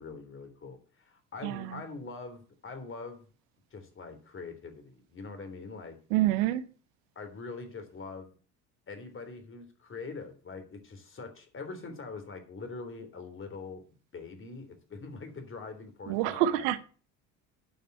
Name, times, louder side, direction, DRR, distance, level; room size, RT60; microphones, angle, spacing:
voice 1, 0.0-3.2 3.7-6.0 7.1-8.3 8.9-13.8 14.1-16.7, left 4 dB, 35° left, 3.4 m, -43 dB
voice 2, 1.4-1.8 6.1-6.6 16.1-16.8, right 13 dB, 80° right, 0.9 m, -27 dB
9.3 x 5.4 x 8.0 m
supercardioid pair, 85°, 35 cm